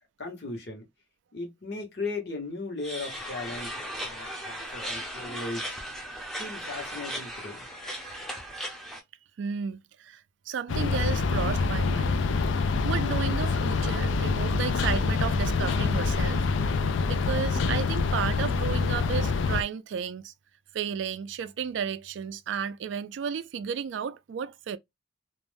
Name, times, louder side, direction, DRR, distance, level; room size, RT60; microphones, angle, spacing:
voice 1, 0.2-0.8 1.3-3.7 4.0-5.8 6.4-7.7, left 3 dB, 55° left, 1.0 m, -37 dB
sound 1, 2.8-9.0, equal, ahead, 0.5 m, -37 dB
voice 2, 9.4-12.2 12.6-16.5 17.1-20.3 20.7-24.8, right 7 dB, 70° right, 0.3 m, -33 dB
sound 2, 10.7-19.6, left 4 dB, 75° left, 0.3 m, -26 dB
2.4 x 2.1 x 3.2 m
head